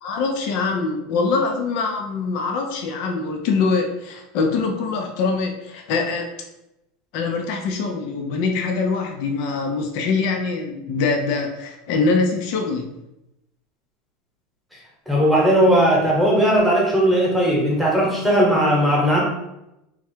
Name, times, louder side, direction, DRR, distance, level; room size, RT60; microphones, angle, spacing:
voice 1, 0.0-6.3 7.1-12.9, left 4 dB, 55° left, 3 dB, 0.6 m, -23 dB
voice 2, 15.1-19.2, equal, ahead, -4 dB, 1.1 m, -17 dB
3.5 x 2.3 x 4.4 m, 0.89 s
supercardioid pair, 155°, 0 cm